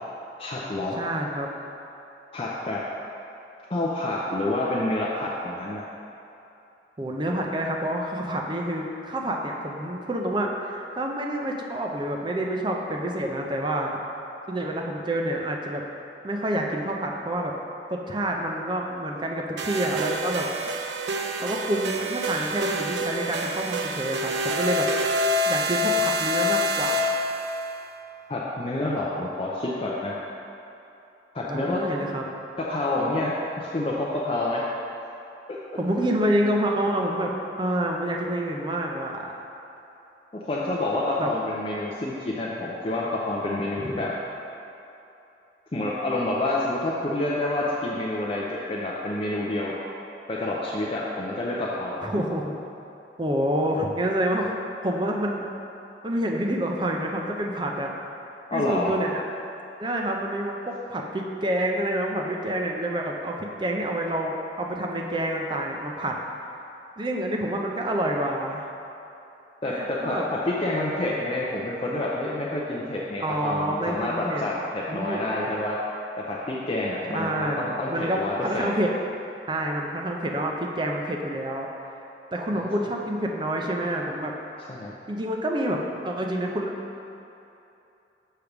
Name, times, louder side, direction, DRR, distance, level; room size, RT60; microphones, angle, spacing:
voice 1, 0.4-1.0 2.3-2.8 3.7-5.8 28.3-30.1 31.3-31.8 32.6-34.6 40.3-44.1 45.7-49.8 50.3-52.1 58.5-58.9 69.6-75.8 76.3-78.8 82.5-82.9 84.7-84.9, left 2 dB, 30° left, -5 dB, 0.5 m, -28 dB
voice 2, 1.0-1.5 7.0-14.0 14.5-15.8 16.2-17.5 17.9-20.5 21.4-24.9 25.5-27.1 31.4-32.2 35.8-37.3 37.6-39.3 41.2-41.3 43.8-44.1 52.0-52.5 53.2-54.5 54.8-55.5 56.0-57.9 58.5-59.2 59.8-66.2 67.0-68.7 69.7-70.3 73.2-74.4 74.9-75.2 77.1-77.6 77.9-78.9 79.5-81.7 82.3-84.3 85.1-86.7, right 1 dB, 25° right, 1 dB, 0.5 m, -28 dB
sound 1, 19.6-27.7, equal, 75° right, 0.4 m, -27 dB
6.5 x 3.4 x 5.8 m, 2.9 s
head